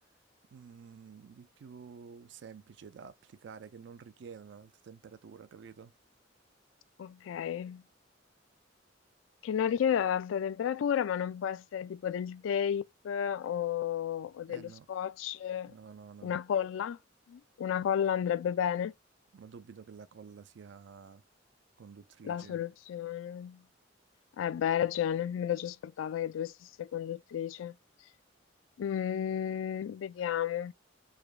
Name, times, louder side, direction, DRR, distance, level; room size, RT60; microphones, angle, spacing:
voice 1, 0.5-5.9 14.5-14.9 15.7-16.3 19.3-21.2 21.8-22.6, right 6 dB, 65° right, 0.4 m, -50 dB
voice 2, 7.0-7.8 9.4-15.7 16.2-17.0 17.3-18.9 22.2-23.6 24.4-26.5 26.8-27.7 28.8-30.7, left 9 dB, 80° left, 0.3 m, -32 dB
4.8 x 2.2 x 2.4 m
head